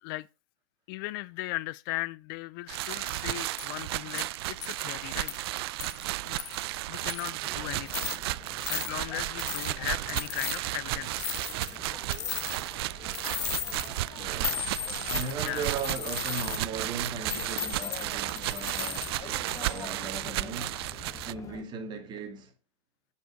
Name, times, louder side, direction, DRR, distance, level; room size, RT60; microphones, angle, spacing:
voice 1, 0.9-5.5 6.2-6.4 6.9-8.1 8.7-11.4 13.2-13.4 15.4-15.7, left 19 dB, 45° left, 0.4 m, -37 dB
sound 1, 2.7-21.3, right 18 dB, 60° right, 0.4 m, -34 dB
sound 2, 3.6-3.7 4.2-4.3 4.6-4.8 5.3-5.4 5.8-6.0 6.4-6.6 7.1-7.4 7.9-8.2 8.6-8.9 9.4-9.7 10.2-10.6 11.2-11.8 12.1-12.7 13.1-13.9 14.4-16.6 17.3-19.1 19.5-19.8, left 12 dB, 80° left, 0.7 m, -36 dB
sound 3, 7.4-21.6, left 7 dB, 20° left, 0.9 m, -47 dB
voice 2, 14.2-14.6 15.1-19.2 19.5-20.8 21.3-22.5, right 5 dB, 30° right, 2.3 m, -38 dB
8.9 x 5.5 x 5.0 m
hypercardioid pair, 125°, 15 cm